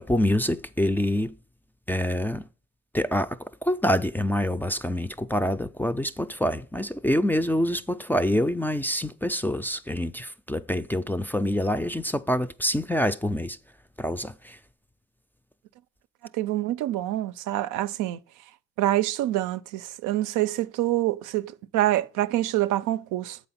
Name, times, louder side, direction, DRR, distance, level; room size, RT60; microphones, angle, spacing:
voice 1, 0.0-1.3 1.9-2.5 2.9-13.6 14.0-14.6, left 1 dB, 5° left, 0.3 m, -26 dB
voice 2, 16.3-18.2 18.8-23.4, right 14 dB, 90° right, 0.5 m, -26 dB
7.8 x 4.2 x 5.6 m
cardioid pair, 90°, 30 cm